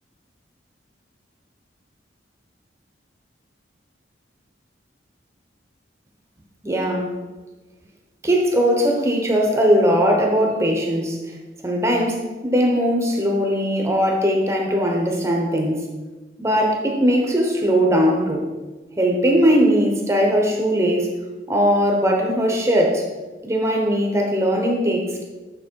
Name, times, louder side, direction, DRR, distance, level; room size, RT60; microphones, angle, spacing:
voice 1, 6.6-7.1 8.2-11.2 11.6-15.8 16.4-18.4 19.0-21.1 21.5-23.0 23.4-25.2, equal, 15° right, 0 dB, 0.9 m, -19 dB
8.8 x 4.5 x 4.6 m, 1.2 s
head